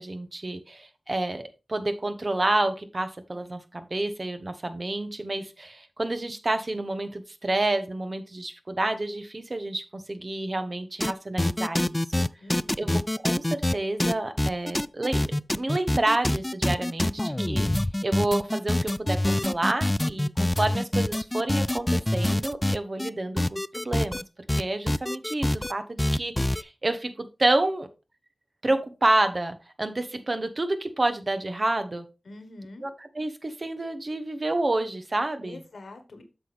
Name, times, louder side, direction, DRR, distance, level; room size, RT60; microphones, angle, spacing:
voice 1, 0.0-1.4 1.7-12.2 12.8-24.2 24.5-27.9 28.6-32.0 32.8-35.6, right 2 dB, 45° right, 9 dB, 1.1 m, -29 dB
sound 1, 11.0-11.1 11.4-23.1 23.4-24.2 24.5-25.7 26.0-26.6, left 1 dB, 20° left, 0.3 m, -25 dB
voice 2, 12.4-13.0 32.2-32.9 35.4-36.2, left 2 dB, 90° left, 8 dB, 1.4 m, -45 dB
8.2 x 6.1 x 3.4 m, 0.29 s
wide cardioid pair, 55°, 0 cm